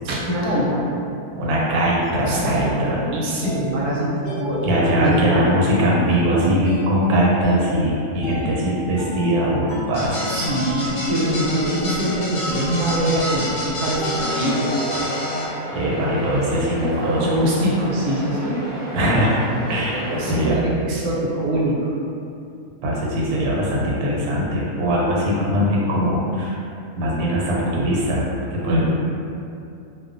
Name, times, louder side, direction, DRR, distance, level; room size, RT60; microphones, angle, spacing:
voice 1, 0.0-0.8 2.3-5.5 10.3-14.9 17.2-18.6 19.9-21.9 28.7-28.9, right 1 dB, 70° right, -5 dB, 0.9 m, -23 dB
sound 1, 1.2-15.9, left 1 dB, 25° left, 0.8 m, -35 dB
voice 2, 1.4-3.0 4.6-10.3 15.7-17.4 18.9-19.3 19.7-20.0 20.3-20.6 22.8-26.6 27.0-28.2 28.5-28.9, equal, 85° right, -5 dB, 1.1 m, -21 dB
sound 2, 9.9-15.5, left 1 dB, 65° left, 0.8 m, -28 dB
sound 3, 14.1-20.5, equal, 45° right, 0.4 m, -33 dB
2.5 x 2.2 x 2.5 m, 2.6 s
omnidirectional pair, 1.5 m